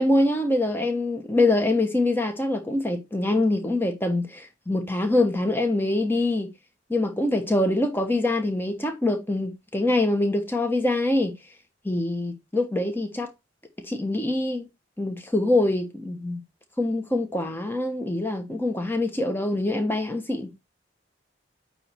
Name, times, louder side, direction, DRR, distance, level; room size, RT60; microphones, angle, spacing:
voice 1, 0.0-6.5 6.9-11.3 11.8-13.3 13.8-14.7 15.0-16.4 16.8-20.5, left 2 dB, 10° left, 1.1 m, -24 dB
8.8 x 3.1 x 4.4 m
head